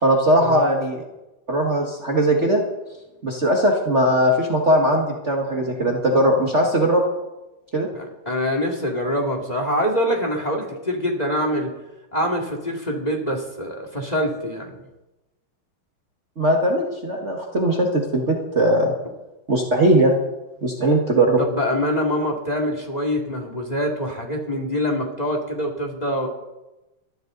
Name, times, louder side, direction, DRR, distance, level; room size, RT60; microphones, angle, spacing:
voice 1, 0.0-1.0 1.5-2.6 3.2-7.0 7.7-7.9 16.4-18.9 19.5-20.2 20.6-21.4, right 1 dB, 35° right, 0 dB, 1.9 m, -19 dB
voice 2, 7.9-11.7 12.1-14.8 21.4-26.3, equal, 20° left, 2 dB, 2.6 m, -25 dB
21.5 x 14.5 x 4.0 m, 1.0 s
omnidirectional pair, 2.4 m